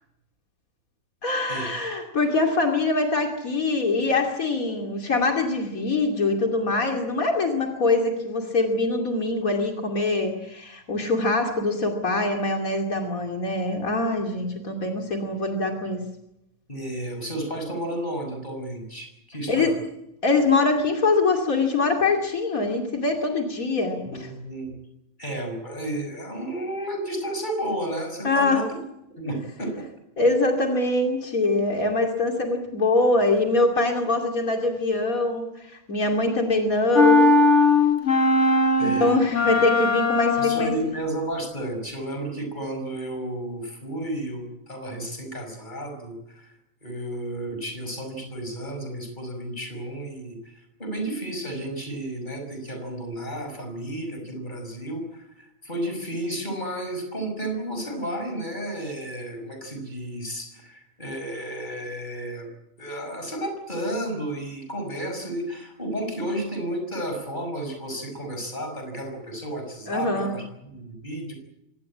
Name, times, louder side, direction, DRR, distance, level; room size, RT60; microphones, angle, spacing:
voice 1, 1.2-16.0 19.5-19.8 20.2-24.3 28.2-28.6 30.2-37.3 38.8-40.7 69.9-70.3, left 3 dB, 75° left, 3 dB, 3.1 m, -23 dB
voice 2, 16.7-19.7 24.0-24.7 25.2-28.7 29.2-29.9 38.8-39.3 40.4-46.5 46.8-62.5 62.8-71.3, right 1 dB, 35° left, 5 dB, 6.2 m, -32 dB
sound 1, 37.0-40.9, left 2 dB, 55° left, 3.2 m, -19 dB
25.0 x 18.5 x 8.6 m, 0.86 s
omnidirectional pair, 1.5 m